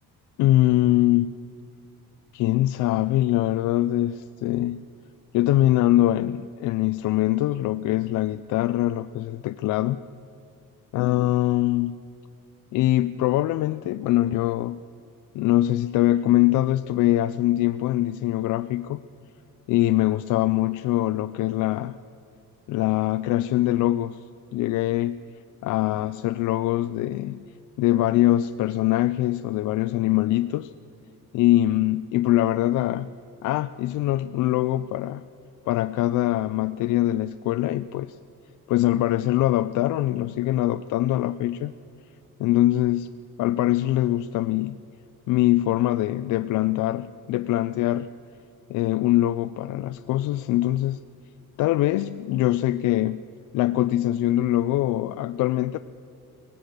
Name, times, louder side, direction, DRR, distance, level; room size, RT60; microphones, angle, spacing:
voice 1, 0.4-1.4 2.3-4.8 5.3-10.0 10.9-12.0 12.7-14.8 15.3-19.0 19.7-22.0 22.7-24.2 24.5-25.2 25.6-27.5 27.8-30.7 31.3-33.1 33.4-35.2 35.7-38.2 38.7-41.7 42.4-43.1 43.4-44.8 45.3-48.1 48.7-51.0 51.6-53.2 53.5-55.8, left 15 dB, 65° left, 11 dB, 0.5 m, -23 dB
23.5 x 18.0 x 6.6 m, 2.5 s
cardioid pair, 165°, 33 cm